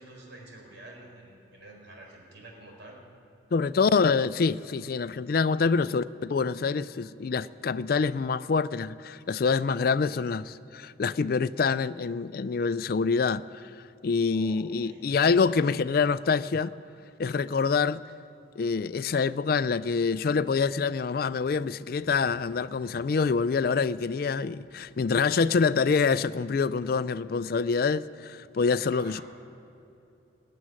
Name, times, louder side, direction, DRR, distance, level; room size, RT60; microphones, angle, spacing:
voice 1, 0.0-3.0 14.3-15.1 28.9-29.2, right 2 dB, 75° right, 4.3 m, -48 dB
voice 2, 3.5-13.7 14.0-16.7 17.2-18.0 18.6-29.2, left 5 dB, 50° left, 0.3 m, -26 dB
20.0 x 7.5 x 9.5 m
head